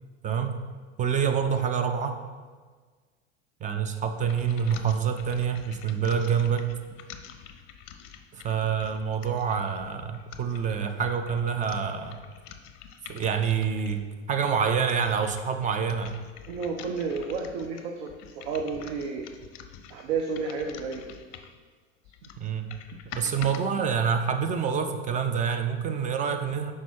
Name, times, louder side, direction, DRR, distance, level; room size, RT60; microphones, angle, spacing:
voice 1, 0.2-0.6 1.0-2.2 3.6-6.7 8.3-12.2 13.1-16.1 22.4-22.7 23.1-26.7, right 7 dB, 20° right, 7 dB, 0.4 m, -27 dB
sound 1, 4.3-14.1 14.7-21.6 22.0-23.6, left 8 dB, 45° left, 0.6 m, -47 dB
voice 2, 16.5-19.3 19.9-21.0, right 5 dB, 55° right, 3 dB, 0.8 m, -31 dB
6.1 x 4.7 x 4.4 m, 1.5 s
hypercardioid pair, 85°, 38 cm